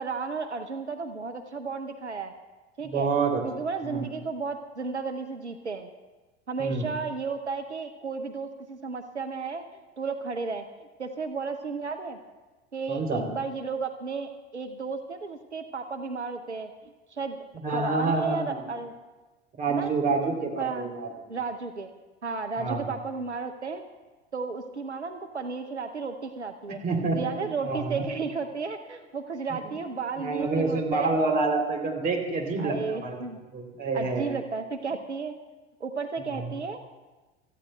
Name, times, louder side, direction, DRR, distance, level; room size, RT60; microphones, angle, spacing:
voice 1, 0.0-2.3 2.8-3.1 3.4-5.9 6.5-9.6 10.0-10.6 11.0-12.2 12.7-16.7 17.1-17.5 17.7-18.9 19.7-19.9 20.6-20.9 21.3-21.9 22.2-23.8 24.3-26.8 27.1-31.1 32.6-33.4 33.9-35.3 35.8-36.8, right 4 dB, 90° right, 7 dB, 0.7 m, -33 dB
voice 2, 2.8-3.4 3.8-4.0 6.6-6.9 12.9-13.3 17.5-18.6 19.6-21.1 22.6-22.9 26.7-28.0 29.6-29.7 30.2-33.2 33.5-34.3 36.2-36.5, right 3 dB, 25° right, 0 dB, 3.1 m, -28 dB
28.5 x 14.0 x 2.2 m, 1.2 s
figure-of-eight pair, 75°, 33 cm